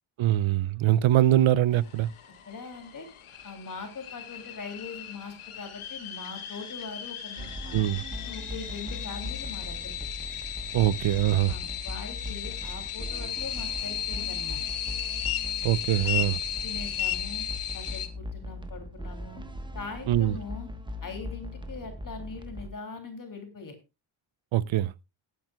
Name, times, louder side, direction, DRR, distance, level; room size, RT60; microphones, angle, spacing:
voice 1, 0.2-2.1 7.7-8.0 10.7-11.5 15.6-16.4 20.1-20.4 24.5-25.1, right 13 dB, 70° right, 0.7 m, -23 dB
sound 1, 1.7-18.1, left 9 dB, 80° left, 1.7 m, -35 dB
voice 2, 2.5-3.1 3.4-7.9 8.2-9.9 11.5-14.6 16.0-16.3 16.6-17.4 17.7-19.4 19.7-20.7 21.0-23.8, left 4 dB, 40° left, 2.9 m, -41 dB
sound 2, 7.4-22.7, left 1 dB, 10° right, 1.1 m, -39 dB
20.0 x 9.3 x 2.3 m
wide cardioid pair, 140°, 49 cm